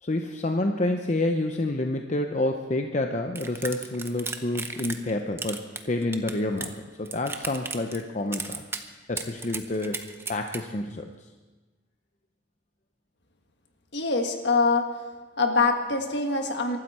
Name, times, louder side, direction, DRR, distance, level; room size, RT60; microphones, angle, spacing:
voice 1, 0.0-6.7 7.0-8.6 9.1-11.1, left 2 dB, 35° left, 4 dB, 0.7 m, -28 dB
sound 1, 3.4-5.1 5.4-6.8 7.1-8.0 8.3-8.8 9.2-10.6, right 4 dB, 10° right, 0.7 m, -34 dB
voice 2, 13.9-14.9 15.4-16.8, left 3 dB, 60° left, 4 dB, 1.6 m, -24 dB
23.5 x 12.5 x 4.3 m, 1.3 s
head